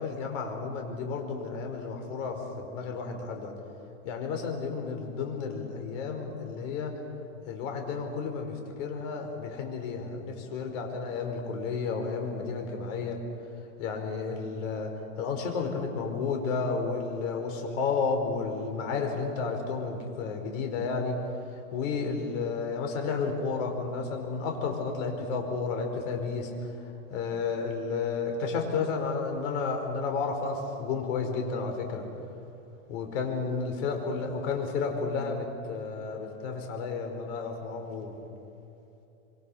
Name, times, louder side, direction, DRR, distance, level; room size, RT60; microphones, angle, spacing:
voice 1, 0.0-3.6 4.0-7.0 7.5-13.2 13.8-21.2 21.5-32.0 32.9-38.2, left 4 dB, 60° left, 4 dB, 5.1 m, -32 dB
26.0 x 25.5 x 5.8 m, 2.9 s
supercardioid pair, 135°, 43 cm